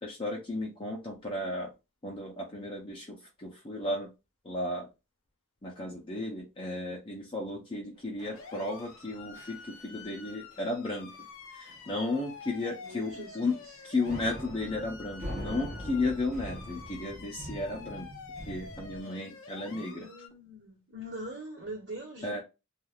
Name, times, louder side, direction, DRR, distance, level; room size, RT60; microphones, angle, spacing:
voice 1, 0.0-1.7 2.0-4.1 4.4-4.9 5.6-11.1 11.5-13.6 13.8-18.1 18.5-20.1 22.2-22.4, left 2 dB, 25° left, 0.5 m, -34 dB
sound 1, 8.2-9.1 9.4-9.7 9.9-10.2 10.5-10.7 11.1-11.2 11.7-12.0 12.3-12.4 12.8-13.7 14.0-19.0, equal, 30° right, 0.9 m, -43 dB
sound 2, 8.4-20.3, left 5 dB, 65° left, 0.6 m, -48 dB
voice 2, 12.8-13.8 19.6-22.4, right 1 dB, 70° right, 1.3 m, -43 dB
3.2 x 2.4 x 2.3 m
head